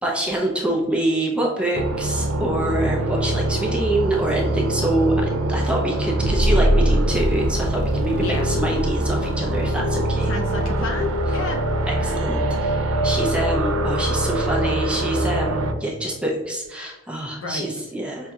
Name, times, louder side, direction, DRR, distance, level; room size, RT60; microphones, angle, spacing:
voice 1, 0.0-10.3 11.9-18.3, right 1 dB, 5° right, -2 dB, 0.6 m, -25 dB
sound 1, 1.7-15.7, right 1 dB, 80° right, 0.4 m, -23 dB
voice 2, 10.2-11.8 17.4-17.9, left 3 dB, 65° left, 1 dB, 0.7 m, -30 dB
5.4 x 2.7 x 2.4 m, 1.1 s
head